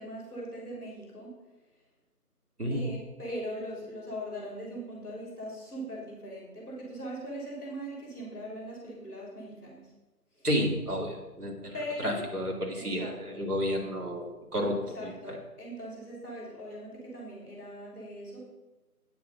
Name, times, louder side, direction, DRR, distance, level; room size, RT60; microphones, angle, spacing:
voice 1, 0.0-1.3 2.7-9.9 10.3-10.5 11.7-12.2 12.7-13.4 14.9-18.5, equal, 10° left, -4 dB, 2.7 m, -40 dB
voice 2, 10.4-11.7 12.0-15.1, equal, 70° right, 0 dB, 2.7 m, -31 dB
9.0 x 6.9 x 5.3 m, 1.1 s
figure-of-eight pair, 170°, 47 cm